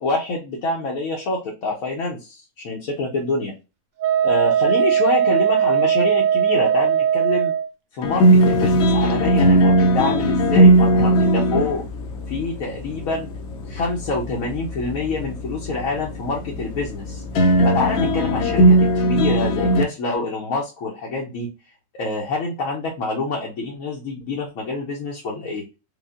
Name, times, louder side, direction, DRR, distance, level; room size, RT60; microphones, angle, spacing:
voice 1, 0.0-3.5 4.2-7.5 7.9-11.8 12.3-13.3 13.7-17.2 17.6-21.5 21.9-25.6, left 3 dB, 90° left, -1 dB, 1.2 m, -26 dB
Wind instrument woodwind instrument, 4.0-7.7, right 9 dB, 90° right, 1.1 m, -19 dB
sound 1, 8.0-19.8, right 1 dB, 65° left, 0.8 m, -19 dB
5.0 x 2.2 x 2.4 m, 0.29 s
omnidirectional pair, 1.4 m